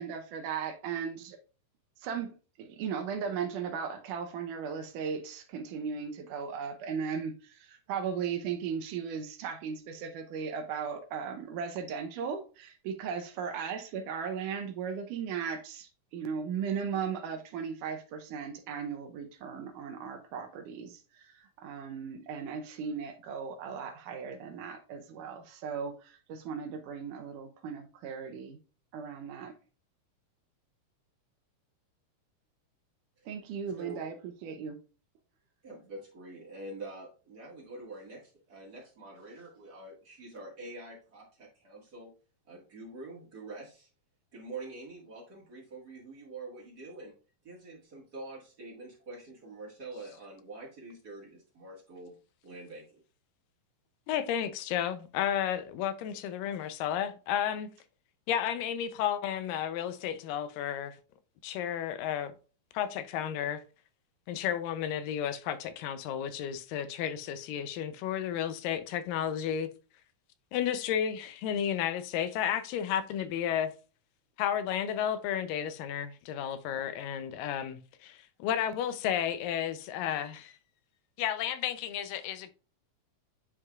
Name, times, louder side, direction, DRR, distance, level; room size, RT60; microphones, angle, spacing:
voice 1, 0.0-1.4 2.0-28.6 28.9-29.5 33.3-34.2 34.4-34.8, right 6 dB, 75° right, 2.3 m, -37 dB
voice 2, 35.6-42.1 42.5-43.9 44.3-47.1 47.4-52.1 52.4-53.0, right 2 dB, 35° right, 1.8 m, -46 dB
voice 3, 54.1-57.7 58.3-61.0 61.4-62.3 62.7-63.6 64.3-69.7 70.5-73.7 74.4-80.5 81.2-82.5, left 9 dB, 85° left, 2.3 m, -32 dB
10.0 x 4.8 x 2.4 m
omnidirectional pair, 3.8 m